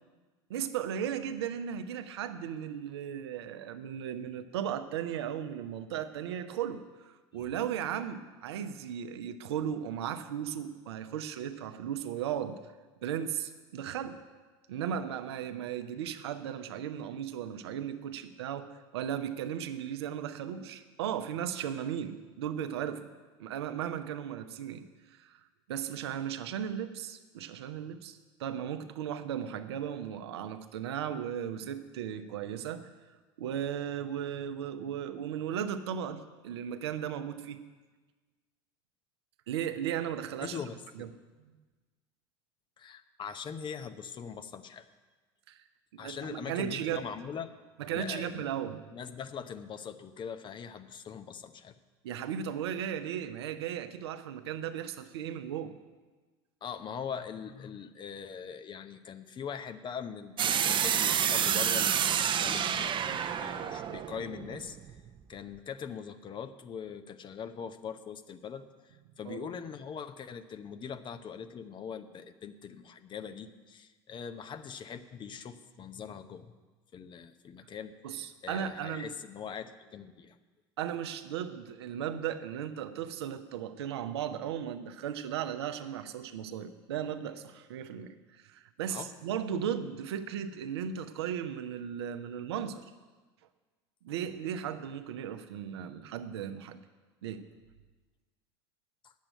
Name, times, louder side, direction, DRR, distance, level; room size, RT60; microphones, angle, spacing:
voice 1, 0.5-6.8 7.3-12.6 13.0-14.2 14.7-23.0 23.4-25.4 25.7-32.9 33.4-37.6 39.5-40.6 40.9-41.1 45.5-45.6 46.0-47.0 47.8-48.8 52.0-55.8 69.1-69.5 78.0-79.1 80.8-92.8 94.0-96.8 97.2-97.5, right 9 dB, 75° right, 9 dB, 0.8 m, -36 dB
voice 2, 40.4-41.1 42.8-44.9 46.0-47.5 47.9-48.5 48.9-51.8 56.6-64.8 65.3-76.5 76.9-80.4 88.9-89.1 99.0-99.1, left 7 dB, 35° left, 10 dB, 0.8 m, -42 dB
sound 1, 60.4-65.2, right 9 dB, 35° right, 0.7 m, -29 dB
8.9 x 7.4 x 8.9 m, 1.3 s
hypercardioid pair, 75°, 14 cm